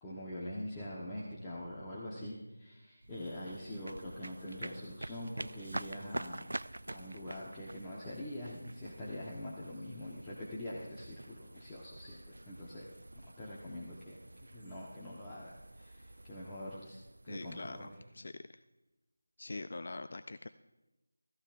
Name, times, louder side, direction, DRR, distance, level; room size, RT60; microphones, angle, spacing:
voice 1, 0.0-6.5 6.9-12.9 13.4-17.0 17.2-17.9, left 1 dB, 15° left, -6 dB, 1.3 m, -44 dB
sound 1, 3.0-18.2, right 1 dB, 85° right, 0.4 m, -47 dB
voice 2, 17.3-17.9 18.1-18.6 19.4-20.5, left 2 dB, 55° left, 12 dB, 0.4 m, -43 dB
19.5 x 14.0 x 2.6 m, 1.1 s
figure-of-eight pair, 170°, 0 cm